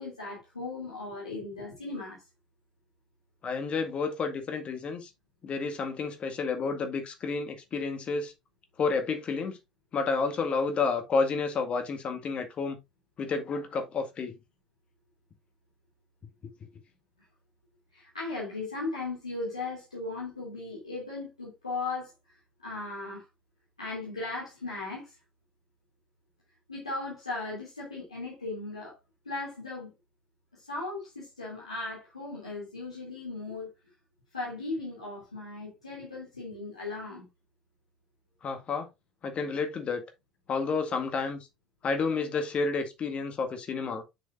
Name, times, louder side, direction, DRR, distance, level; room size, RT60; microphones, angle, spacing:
voice 1, 0.0-2.2 17.9-22.1 22.6-23.2 23.8-25.2 26.7-29.0 29.2-29.9 30.5-33.7 34.3-37.3, left 3 dB, 85° left, 2.9 m, -37 dB
voice 2, 3.4-5.1 5.4-8.3 8.8-9.6 9.9-12.8 13.2-14.3 38.4-38.9 39.2-40.0 40.5-41.5 41.8-44.0, left 4 dB, 40° left, 1.9 m, -30 dB
8.0 x 6.4 x 2.6 m
figure-of-eight pair, 65°, 3 cm